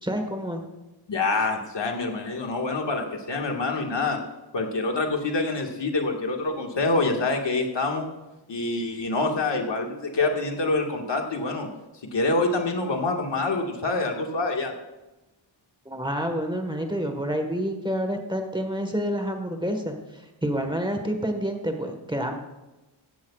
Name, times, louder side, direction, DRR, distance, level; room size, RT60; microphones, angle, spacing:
voice 1, 0.0-0.6 15.8-22.3, equal, 10° right, 4 dB, 1.4 m, -28 dB
voice 2, 1.1-4.2 4.5-8.1 8.5-11.7 12.1-14.7, left 3 dB, 65° left, 2 dB, 1.8 m, -26 dB
16.5 x 14.5 x 2.4 m, 1.0 s
wide cardioid pair, 125°, 47 cm